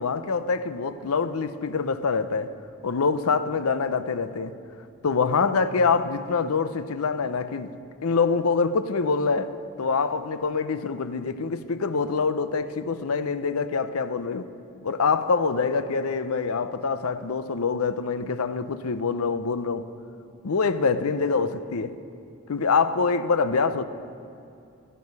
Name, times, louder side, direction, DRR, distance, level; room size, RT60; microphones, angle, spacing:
voice 1, 0.0-2.5 2.8-4.5 5.0-7.7 8.0-14.5 14.8-19.9 20.4-21.9 22.5-23.8, left 4 dB, 90° left, 0.6 m, -25 dB
15.5 x 11.5 x 5.4 m
head